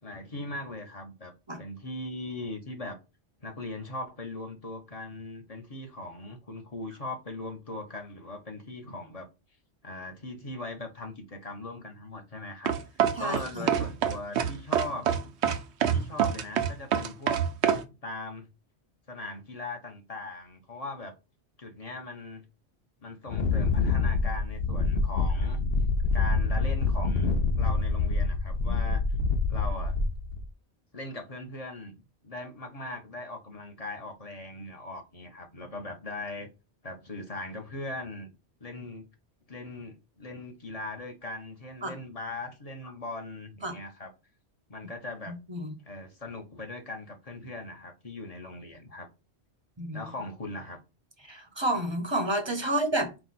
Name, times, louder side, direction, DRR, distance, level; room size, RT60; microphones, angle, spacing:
voice 1, 0.0-1.3 1.6-3.0 3.4-9.3 9.8-15.3 15.9-18.5 19.1-21.1 21.6-22.4 23.0-25.6 26.1-29.0 29.5-30.0 30.9-36.5 36.8-38.3 38.6-39.0 39.5-44.1 44.7-45.4 45.9-49.1 49.9-50.8 52.6-52.7, left 2 dB, 35° left, 1.0 m, -40 dB
sound 1, 12.7-17.8, right 8 dB, 80° right, 0.9 m, -25 dB
voice 2, 13.2-13.7 41.8-42.0 43.6-43.8 45.3-45.7 49.8-50.1 51.2-53.1, right 1 dB, 25° right, 0.8 m, -30 dB
Wind, 23.3-30.4, left 3 dB, 65° left, 0.9 m, -26 dB
4.7 x 2.2 x 4.1 m
omnidirectional pair, 1.1 m